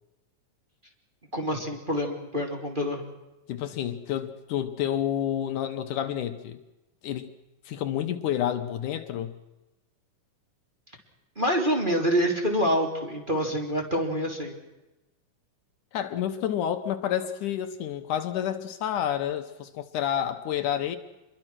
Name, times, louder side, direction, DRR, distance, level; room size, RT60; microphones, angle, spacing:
voice 1, 1.3-3.0 11.4-14.5, equal, 15° right, 3.0 m, -26 dB
voice 2, 3.5-6.6 7.0-7.3 7.7-9.4 15.9-21.0, left 10 dB, 75° left, 2.5 m, -29 dB
27.5 x 22.5 x 6.2 m
omnidirectional pair, 3.9 m